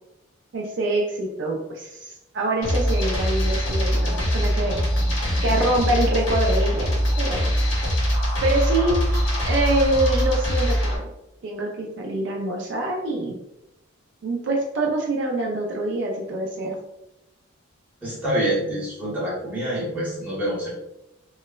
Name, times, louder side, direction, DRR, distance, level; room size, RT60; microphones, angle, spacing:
voice 1, 0.5-4.8 5.4-7.5 8.4-11.1 11.4-13.4 14.2-16.8, right 2 dB, 55° right, 0 dB, 0.3 m, -25 dB
sound 1, 2.6-11.0, equal, 60° left, 0.7 m, -22 dB
voice 2, 18.0-20.7, right 1 dB, 5° right, -8 dB, 0.8 m, -26 dB
3.0 x 2.0 x 2.2 m, 0.91 s
head